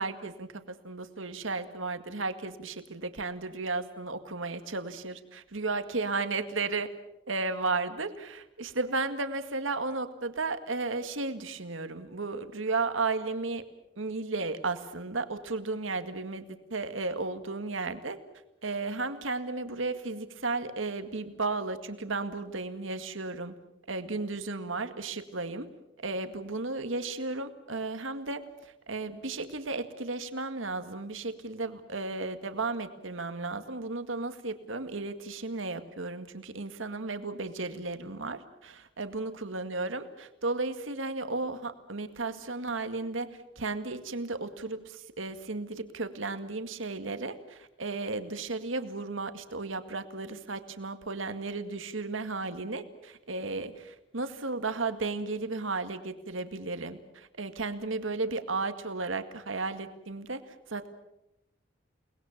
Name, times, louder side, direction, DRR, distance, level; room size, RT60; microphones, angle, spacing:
voice 1, 0.0-6.9 7.3-13.6 14.0-18.2 18.6-23.5 23.9-25.7 26.0-60.9, right 3 dB, 80° right, 9 dB, 1.9 m, -34 dB
30.0 x 20.0 x 7.3 m, 0.87 s
head